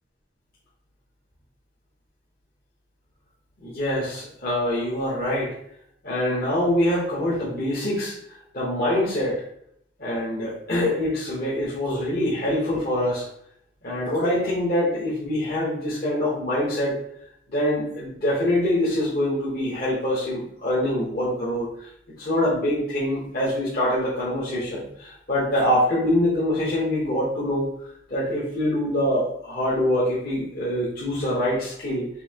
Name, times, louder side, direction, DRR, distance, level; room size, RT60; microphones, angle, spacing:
voice 1, 3.6-5.5 6.0-8.2 8.5-9.4 10.0-13.3 13.8-17.0 17.5-21.9 22.2-27.7 28.1-32.1, left 1 dB, 55° left, -8 dB, 1.0 m, -24 dB
5.5 x 2.7 x 2.8 m, 0.72 s
head